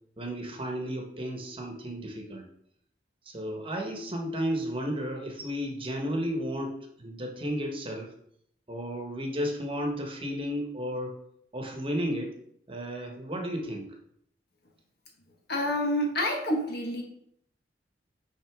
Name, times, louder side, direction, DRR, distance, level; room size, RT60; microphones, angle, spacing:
voice 1, 0.2-2.5 3.2-8.1 8.7-11.1 11.5-12.3 12.7-13.9, equal, 30° right, 2 dB, 1.2 m, -33 dB
voice 2, 15.5-17.0, left 1 dB, 60° left, 1 dB, 1.4 m, -28 dB
6.2 x 5.4 x 3.6 m, 0.71 s
head